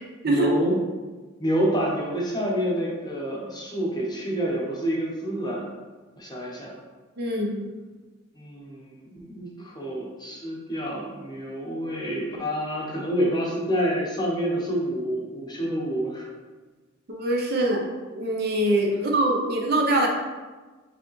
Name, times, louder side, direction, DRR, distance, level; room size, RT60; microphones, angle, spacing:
voice 1, 0.2-0.8 1.4-5.7 6.2-6.8 8.4-16.3, equal, 20° left, -3 dB, 0.8 m, -28 dB
voice 2, 7.2-7.7 17.1-17.8 18.1-20.1, right 1 dB, 50° right, 0 dB, 0.6 m, -23 dB
4.9 x 3.4 x 3.1 m, 1.3 s
head